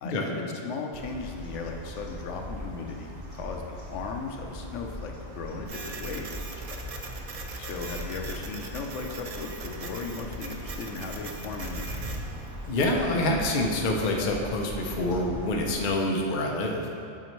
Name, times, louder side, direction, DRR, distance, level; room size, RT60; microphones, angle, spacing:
voice 1, 0.0-6.8 7.6-11.9, left 4 dB, 80° left, 2 dB, 0.9 m, -37 dB
sound 1, 0.9-15.7, equal, 20° right, 0.7 m, -40 dB
Printer, 5.7-13.0, right 4 dB, 65° right, 0.3 m, -41 dB
voice 2, 12.7-16.9, left 1 dB, 50° left, 0 dB, 0.7 m, -26 dB
7.9 x 4.3 x 3.1 m, 2.5 s
omnidirectional pair, 1.2 m